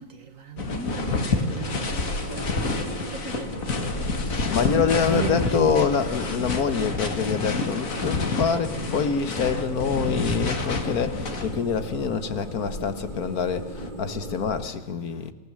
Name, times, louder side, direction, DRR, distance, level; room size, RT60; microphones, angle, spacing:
voice 1, 0.0-5.9, right 5 dB, 65° right, 2.3 m, -36 dB
sound 1, 0.6-11.8 12.4-13.9, left 3 dB, 65° left, 2.3 m, -29 dB
sound 2, 0.9-14.7, right 2 dB, 35° right, 1.8 m, -37 dB
voice 2, 4.5-13.7 14.0-15.3, left 6 dB, 85° left, 1.9 m, -26 dB
26.0 x 18.5 x 7.6 m
omnidirectional pair, 1.5 m